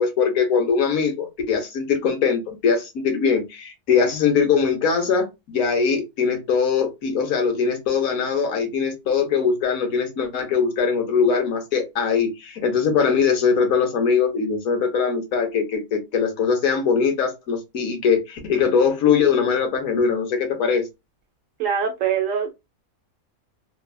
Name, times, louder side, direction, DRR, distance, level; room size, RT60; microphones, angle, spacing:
voice 1, 0.0-20.9, left 6 dB, 70° left, 1.2 m, -21 dB
voice 2, 21.6-22.5, right 7 dB, 65° right, 1.0 m, -23 dB
3.1 x 2.3 x 2.3 m
omnidirectional pair, 1.6 m